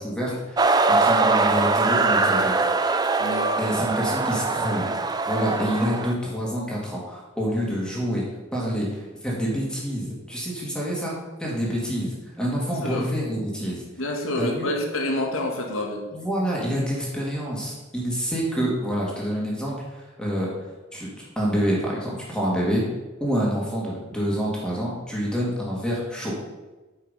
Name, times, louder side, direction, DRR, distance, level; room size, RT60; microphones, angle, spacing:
voice 1, 0.0-2.5 3.6-4.9 5.3-8.2 8.5-11.1 11.4-13.8 14.4-14.7 16.1-20.5 20.9-22.8 23.2-26.3, equal, 5° left, -4 dB, 2.2 m, -27 dB
sound 1, 0.6-6.1, right 3 dB, 20° right, 0.4 m, -22 dB
voice 2, 3.2-3.5 12.8-13.1 14.0-16.0, left 1 dB, 80° left, 1 dB, 1.8 m, -28 dB
8.9 x 5.6 x 5.6 m, 1.1 s
head